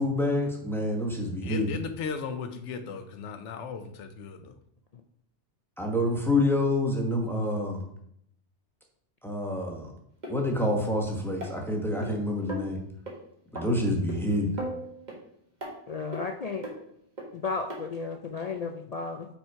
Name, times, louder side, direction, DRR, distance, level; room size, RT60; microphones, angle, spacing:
voice 1, 0.0-1.7 5.8-7.8 9.2-9.9 10.3-12.8 13.5-14.6, left 1 dB, ahead, 0 dB, 0.9 m, -27 dB
voice 2, 1.4-4.6, left 6 dB, 80° left, 8 dB, 1.0 m, -36 dB
sound 1, 10.2-10.3 11.4-12.1 12.5-12.7 13.1-13.2 13.5-13.7 14.1-14.2 14.6-15.2 15.6-15.7 16.1-16.2 16.6-16.8 17.2-17.3 17.7-17.8 18.4-18.5, right 1 dB, 40° right, 1.6 m, -36 dB
voice 3, 15.9-16.7 17.3-19.3, left 4 dB, 65° left, 4 dB, 0.4 m, -33 dB
5.5 x 4.4 x 4.6 m, 0.71 s
omnidirectional pair, 1.2 m